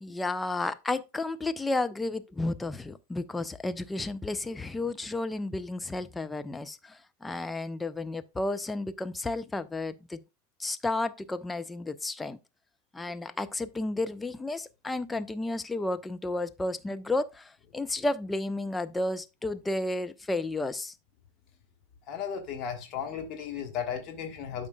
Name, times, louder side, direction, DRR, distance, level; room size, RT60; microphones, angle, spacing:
voice 1, 0.0-10.2 10.6-12.4 12.9-20.9, left 2 dB, 10° left, 0.5 m, -32 dB
voice 2, 22.1-24.7, left 7 dB, 35° left, 1.4 m, -35 dB
12.0 x 5.1 x 2.3 m
figure-of-eight pair, 90°, 0 cm